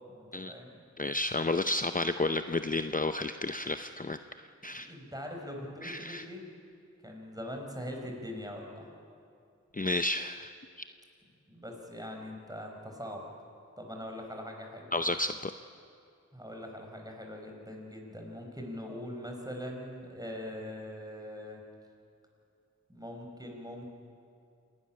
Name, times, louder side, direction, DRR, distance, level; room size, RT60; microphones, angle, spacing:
voice 1, 0.1-0.8 4.7-6.5 7.0-8.9 11.5-13.2 13.8-14.9 16.3-21.6 22.9-23.9, left 1 dB, 15° right, 1 dB, 4.5 m, -42 dB
voice 2, 1.0-4.9 5.8-6.3 9.7-10.5 14.9-15.5, left 2 dB, 30° left, 9 dB, 0.6 m, -32 dB
27.5 x 13.0 x 10.0 m, 2.4 s
wide cardioid pair, 50°, 29 cm